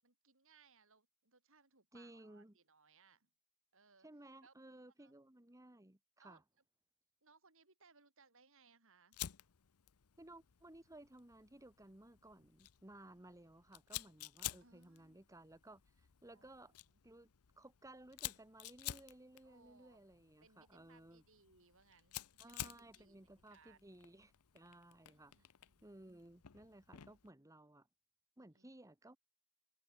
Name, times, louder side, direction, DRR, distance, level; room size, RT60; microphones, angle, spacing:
voice 1, 0.0-3.3 3.7-4.1 4.4-4.5 5.0-5.1 6.2-6.4 7.2-9.2 14.6-15.2 16.3-16.8 19.4-20.0 20.4-23.2 23.5-23.8 25.1-25.9 28.5-28.7, right 4 dB, 60° right, 7.2 m, -69 dB
voice 2, 1.9-2.6 4.0-6.4 10.2-16.7 17.0-17.3 17.6-21.2 22.4-25.3 25.8-27.9 28.4-29.2, right 1 dB, 15° right, 1.3 m, -58 dB
Fire, 9.1-27.3, left 13 dB, 80° left, 0.8 m, -52 dB
head